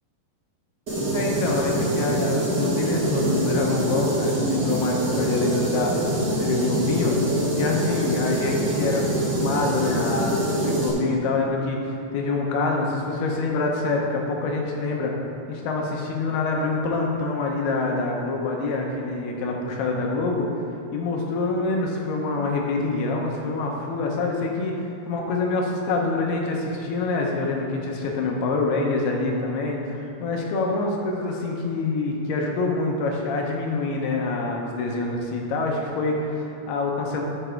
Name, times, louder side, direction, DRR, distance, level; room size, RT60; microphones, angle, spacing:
sound 1, 0.9-10.9, right 1 dB, 60° right, 1.1 m, -24 dB
voice 1, 1.1-7.2 7.6-15.1 15.5-20.5 20.9-24.8 25.1-37.2, left 3 dB, 75° left, 0 dB, 2.8 m, -26 dB
10.5 x 6.8 x 4.4 m, 2.8 s
omnidirectional pair, 4.8 m